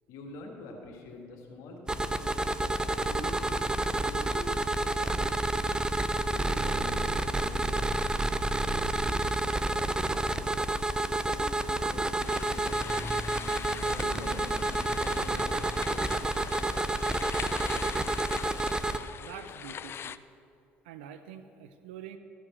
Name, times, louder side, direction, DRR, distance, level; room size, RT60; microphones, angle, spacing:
voice 1, 0.1-2.3 2.9-5.6 6.3-7.9 8.5-10.7 11.3-13.2 13.8-16.4, left 2 dB, 75° left, 1 dB, 1.7 m, -46 dB
sound 1, 1.9-19.0, right 2 dB, 15° right, 0.6 m, -29 dB
sound 2, 11.5-16.6, right 3 dB, 65° right, 1.7 m, -46 dB
sound 3, 12.2-20.2, left 8 dB, 45° left, 0.4 m, -42 dB
voice 2, 19.2-20.2 20.8-22.2, right 9 dB, 85° right, 10 dB, 0.5 m, -46 dB
14.0 x 5.0 x 7.3 m, 2.6 s
hypercardioid pair, 65°, 6 cm